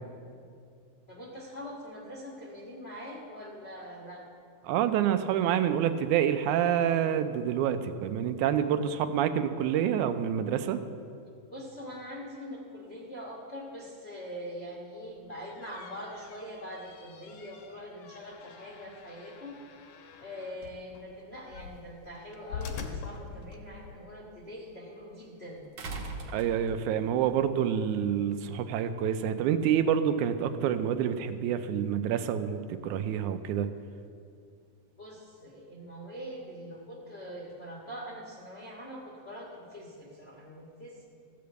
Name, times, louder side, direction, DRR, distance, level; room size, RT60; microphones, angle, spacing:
voice 1, 1.1-4.2 8.5-8.9 11.5-19.6 20.2-25.7 35.0-41.0, equal, 45° left, -4 dB, 0.8 m, -43 dB
voice 2, 4.6-10.8 26.3-33.7, right 9 dB, 85° right, 10 dB, 2.0 m, -27 dB
sound 1, 15.1-24.0, left 6 dB, 70° left, 1.5 m, -45 dB
sound 2, 22.5-22.6 25.8-27.1 28.4-28.5, right 3 dB, 60° right, 1.7 m, -39 dB
14.5 x 5.2 x 7.9 m, 2.4 s
omnidirectional pair, 3.5 m